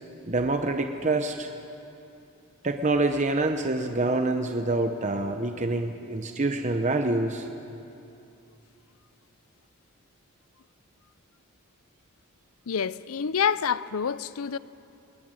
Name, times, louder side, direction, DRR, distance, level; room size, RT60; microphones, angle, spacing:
voice 1, 0.3-1.5 2.6-7.5, right 2 dB, 35° right, 0.9 m, -26 dB
voice 2, 12.7-14.6, left 7 dB, 80° left, 0.5 m, -27 dB
21.0 x 20.0 x 9.0 m
head